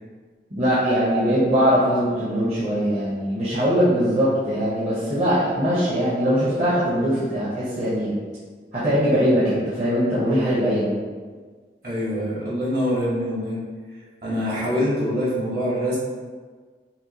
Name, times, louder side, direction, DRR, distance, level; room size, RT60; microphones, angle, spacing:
voice 1, 0.5-8.1 8.7-10.9, equal, 40° right, -10 dB, 0.8 m, -21 dB
voice 2, 11.8-13.6 14.2-16.0, equal, 55° right, -8 dB, 1.4 m, -24 dB
5.6 x 2.2 x 2.8 m, 1.5 s
head